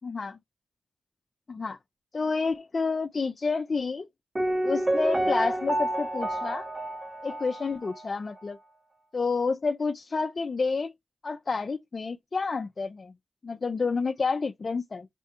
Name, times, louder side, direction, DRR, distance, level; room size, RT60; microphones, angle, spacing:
voice 1, 0.0-0.4 1.5-1.8 2.1-4.1 4.6-6.7 7.2-8.6 9.1-10.9 11.2-13.1 13.4-15.1, left 4 dB, 50° left, 0.5 m, -29 dB
Piano, 4.4-8.1 8.4-8.5, right 1 dB, 35° right, 0.9 m, -29 dB
4.4 x 3.4 x 2.8 m
cardioid pair, 55°, 0 cm